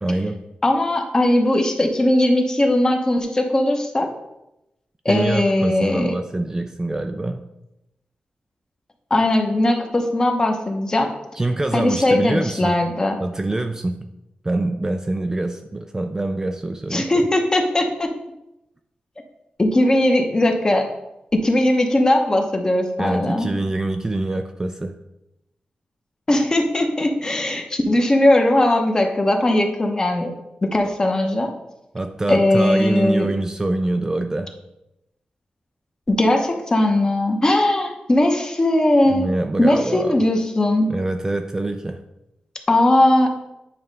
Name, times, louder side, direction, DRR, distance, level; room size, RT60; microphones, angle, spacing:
voice 1, 0.0-0.4 5.1-7.4 11.3-12.8 13.2-14.0 14.4-17.1 23.0-24.9 31.9-34.5 39.1-40.2 40.9-42.0, right 2 dB, 20° right, 6 dB, 0.3 m, -25 dB
voice 2, 0.6-4.1 5.0-6.1 9.1-11.1 11.7-13.2 16.9-18.1 19.6-20.9 21.3-23.5 26.3-30.3 30.6-31.5 32.3-33.3 36.1-39.3 39.6-40.9 42.7-43.3, left 1 dB, 25° left, 3 dB, 0.9 m, -19 dB
9.2 x 3.1 x 5.3 m, 0.89 s
wide cardioid pair, 145°, 3 cm